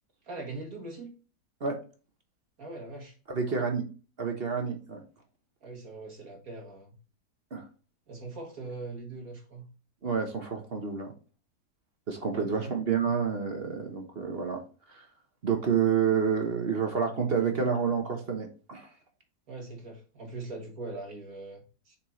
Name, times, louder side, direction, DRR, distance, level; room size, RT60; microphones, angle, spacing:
voice 1, 0.2-1.1 2.6-3.2 5.6-6.9 8.1-9.7 12.3-12.7 19.5-22.0, right 3 dB, 60° right, 1.8 m, -41 dB
voice 2, 3.3-3.8 4.2-5.0 7.5-7.6 10.0-11.1 12.1-14.6 14.9-15.0 15.4-18.9, right 6 dB, 40° right, 1.1 m, -29 dB
7.1 x 4.2 x 3.1 m
omnidirectional pair, 1.8 m